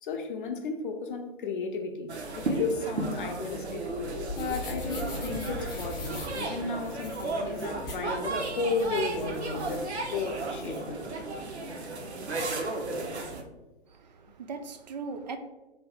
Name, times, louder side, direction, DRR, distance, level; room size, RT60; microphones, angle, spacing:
voice 1, 0.0-3.8 4.3-11.0, left 4 dB, 50° left, 0.6 m, -34 dB
sound 1, 2.1-13.4, right 2 dB, 80° right, 0.7 m, -34 dB
sound 2, 3.8-10.8, left 2 dB, 10° left, 0.6 m, -41 dB
voice 2, 13.9-15.4, right 4 dB, 45° right, 0.4 m, -39 dB
3.4 x 2.3 x 4.1 m
figure-of-eight pair, 120°, 32 cm